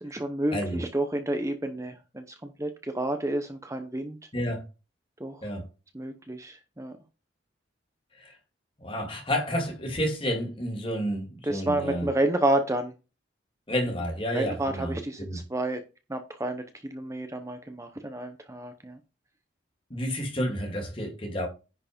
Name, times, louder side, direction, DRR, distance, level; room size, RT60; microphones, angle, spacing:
voice 1, 0.0-4.2 5.2-5.5 5.9-7.0 11.4-12.9 14.3-15.8 16.1-19.0, right 1 dB, 15° right, 0.9 m, -30 dB
voice 2, 0.5-0.8 4.3-4.6 5.4-5.6 8.2-8.3 8.8-12.1 13.7-15.4 19.9-21.5, equal, 30° left, 2.5 m, -30 dB
10.5 x 4.7 x 5.2 m
head